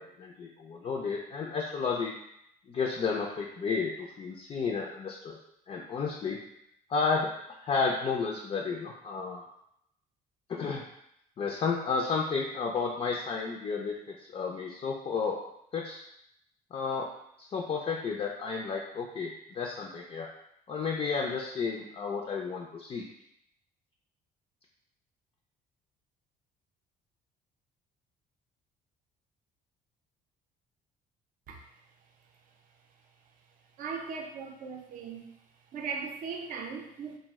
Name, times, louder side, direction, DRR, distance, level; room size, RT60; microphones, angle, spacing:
voice 1, 0.0-2.1 2.7-5.4 5.7-6.4 6.9-9.5 10.5-10.8 11.4-15.4 15.7-16.0 16.7-17.1 17.4-20.3 20.7-23.0, left 5 dB, 35° left, -1 dB, 0.4 m, -32 dB
voice 2, 33.8-35.4 35.7-37.2, right 5 dB, 55° right, 2 dB, 0.5 m, -38 dB
2.4 x 2.0 x 3.4 m, 0.77 s
cardioid pair, 110°, 17 cm